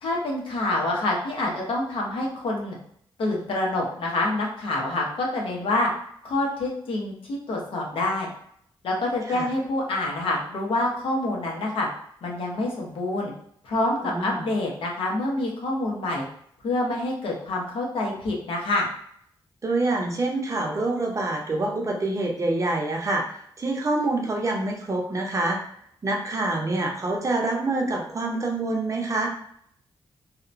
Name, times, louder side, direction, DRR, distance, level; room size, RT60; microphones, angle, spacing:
voice 1, 0.0-2.8 3.2-5.9 6.2-8.3 8.8-11.9 12.2-13.3 13.6-16.2 16.6-18.9, left 2 dB, 75° left, -2 dB, 0.8 m, -27 dB
voice 2, 14.0-14.4 19.6-25.6 26.0-29.3, right 2 dB, 35° right, 1 dB, 0.6 m, -26 dB
2.9 x 2.1 x 2.5 m, 0.66 s
cardioid pair, 95°, 9 cm